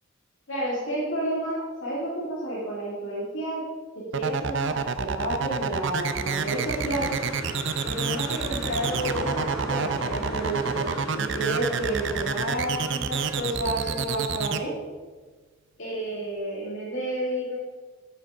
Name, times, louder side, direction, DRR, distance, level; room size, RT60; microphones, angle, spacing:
voice 1, 0.5-3.6 4.1-7.2 7.8-14.7 15.8-17.6, right 1 dB, 60° left, -7 dB, 2.7 m, -30 dB
sound 1, 4.1-14.6, right 5 dB, 55° right, 0.5 m, -28 dB
sound 2, 6.0-13.9, right 1 dB, 5° right, 2.3 m, -37 dB
8.8 x 7.8 x 4.8 m, 1.4 s
head